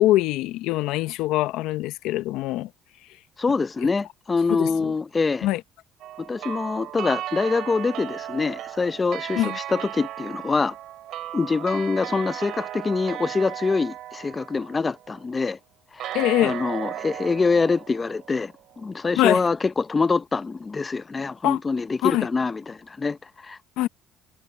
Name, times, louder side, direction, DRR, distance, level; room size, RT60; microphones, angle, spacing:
voice 1, 0.0-2.7 4.5-4.9 5.4-5.6 9.4-9.6 16.1-16.6 19.2-19.4 21.4-21.6 22.0-22.3 23.8-23.9, left 16 dB, 75° left, 0.9 m, -23 dB
voice 2, 3.4-5.5 6.2-10.7 11.3-15.6 15.9-16.2 16.4-23.2 23.4-23.6, left 4 dB, 25° left, 0.8 m, -25 dB
sound 1, 6.0-15.2 16.0-18.9, right 13 dB, 65° right, 4.0 m, -36 dB
supercardioid pair, 80°, 0 cm